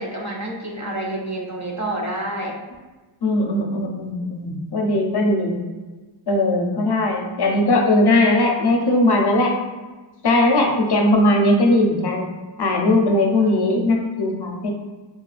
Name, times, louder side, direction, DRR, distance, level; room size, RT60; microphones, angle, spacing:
voice 1, 0.0-2.6 13.4-13.6, right 1 dB, 40° right, -1 dB, 0.4 m, -28 dB
voice 2, 3.2-5.6 6.3-9.5 10.2-12.3 12.6-14.7, left 1 dB, 60° left, 1 dB, 0.5 m, -19 dB
2.8 x 2.3 x 2.4 m, 1.2 s
wide cardioid pair, 65°, 46 cm